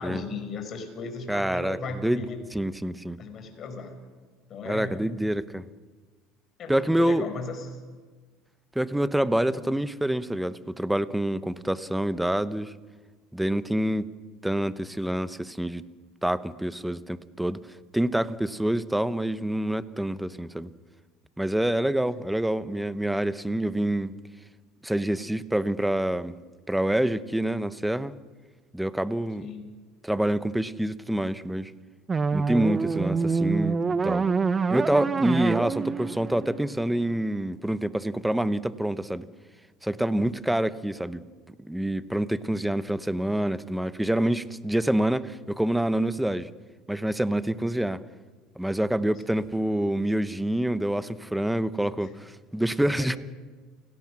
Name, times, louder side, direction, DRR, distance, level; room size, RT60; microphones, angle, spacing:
voice 1, 0.0-2.4 3.2-4.0 4.5-5.1 6.6-7.8 29.4-29.8 49.2-49.4 52.0-52.1 53.0-53.2, left 4 dB, 45° left, 6 dB, 4.8 m, -37 dB
voice 2, 1.3-1.8 2.0-2.2 2.5-3.2 4.7-5.6 6.7-7.3 8.7-12.7 13.3-14.1 14.4-15.8 16.2-17.6 17.9-20.7 21.4-24.1 24.8-26.4 26.7-28.1 28.7-29.5 30.0-31.7 32.3-34.3 34.7-39.3 39.8-41.2 41.6-46.5 46.9-48.0 48.6-53.2, right 1 dB, 5° right, 14 dB, 1.0 m, -27 dB
sound 1, 32.1-37.2, right 4 dB, 25° right, 0.7 m, -26 dB
28.5 x 18.0 x 6.2 m, 1.4 s
supercardioid pair, 95°, 0 cm